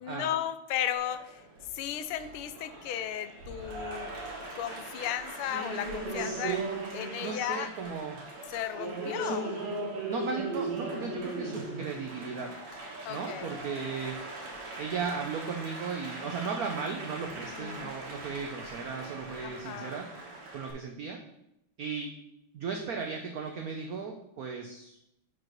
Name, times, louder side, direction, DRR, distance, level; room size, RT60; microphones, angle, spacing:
voice 1, 0.0-1.4 1.7-4.1 4.6-6.6 6.9-7.7 8.5-9.5 13.0-13.5 17.5-17.9 19.4-20.0, left 10 dB, 85° left, 11 dB, 1.5 m, -35 dB
Applause, 1.0-20.7, right 2 dB, 60° right, 1.9 m, -39 dB
voice 2, 6.2-6.6 7.2-8.2 9.0-9.4 10.1-12.5 13.1-14.2 14.8-20.1 20.5-21.2 21.8-22.2 22.5-25.0, right 5 dB, 80° right, 3 dB, 0.8 m, -36 dB
4.7 x 4.7 x 5.9 m, 0.82 s
omnidirectional pair, 2.3 m